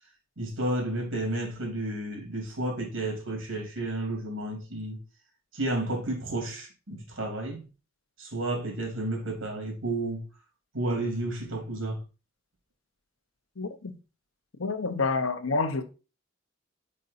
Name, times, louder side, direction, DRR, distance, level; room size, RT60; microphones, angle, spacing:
voice 1, 0.4-5.0 5.5-7.7 8.2-10.2 10.7-12.0, right 1 dB, 80° right, 2.9 m, -31 dB
voice 2, 13.6-14.0 14.6-15.8, left 3 dB, 85° left, 0.9 m, -28 dB
5.5 x 4.8 x 4.1 m
head